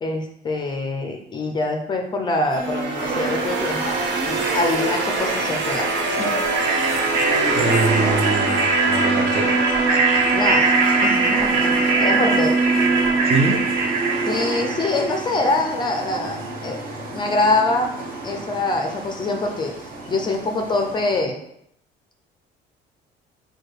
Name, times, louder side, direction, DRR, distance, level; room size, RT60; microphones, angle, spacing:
voice 1, 0.0-4.0 4.3-6.4 10.3-10.7 11.0-12.6 14.2-16.9 17.1-17.9 18.2-21.4, left 2 dB, 25° left, 3 dB, 0.5 m, -24 dB
sound 1, 2.5-15.5, right 3 dB, 75° right, 0.8 m, -21 dB
sound 2, 3.0-21.2, right 2 dB, 50° right, 1.2 m, -31 dB
voice 2, 7.5-9.6 13.2-13.7, right 3 dB, 35° right, 3 dB, 0.5 m, -24 dB
4.6 x 2.3 x 4.7 m, 0.74 s
cardioid pair, 165°, 18 cm